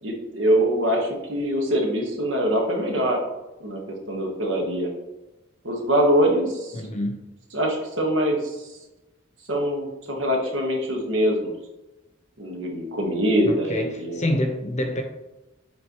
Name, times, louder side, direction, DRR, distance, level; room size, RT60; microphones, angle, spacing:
voice 1, 0.0-3.2 3.6-3.8 4.1-4.9 5.6-6.7 7.5-8.7 9.5-11.5 12.4-14.2, equal, 70° right, 1.4 m, -23 dB
voice 2, 6.7-7.2 13.4-15.0, left 1 dB, 35° left, 0.9 m, -27 dB
7.7 x 4.0 x 3.0 m
head